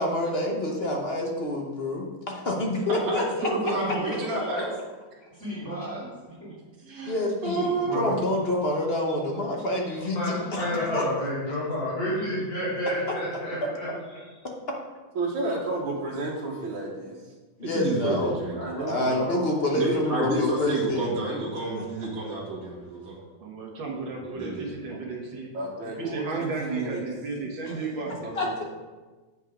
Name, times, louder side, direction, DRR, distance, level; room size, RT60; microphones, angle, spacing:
voice 1, 0.0-3.5 7.1-7.7 7.9-11.1 13.6-13.7 17.6-18.4 18.9-21.1 21.7-21.8 22.2-22.3 27.7-27.8 28.3-28.6, left 1 dB, 40° left, 0 dB, 0.9 m, -27 dB
voice 2, 2.9-4.6 6.8-7.1 7.4-8.0 17.7-18.6 19.8-23.2 24.2-24.7, right 2 dB, 50° right, -6 dB, 2.0 m, -29 dB
voice 3, 3.5-4.7 5.3-6.6 18.4-19.5, right 1 dB, 10° left, -12 dB, 2.5 m, -35 dB
voice 4, 10.0-13.9, left 1 dB, 70° left, -8 dB, 2.6 m, -29 dB
voice 5, 15.2-17.2 18.6-19.3 24.9-25.1 25.5-27.0 28.2-28.6, right 2 dB, 85° right, -5 dB, 1.9 m, -32 dB
voice 6, 23.4-25.5 26.0-28.2, right 3 dB, 65° right, 0 dB, 1.9 m, -34 dB
8.0 x 5.4 x 5.0 m, 1.3 s
omnidirectional pair, 2.2 m